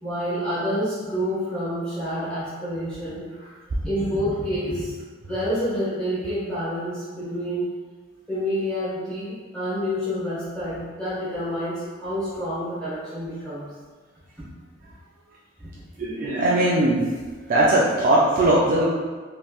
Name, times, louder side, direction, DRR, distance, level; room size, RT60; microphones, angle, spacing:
voice 1, 0.0-3.5 3.8-4.9 5.3-7.7 8.3-13.7, equal, 5° left, -12 dB, 1.4 m, -28 dB
voice 2, 16.0-17.1 17.5-18.8, right 1 dB, 40° right, -5 dB, 0.3 m, -19 dB
3.1 x 3.0 x 2.3 m, 1.5 s
head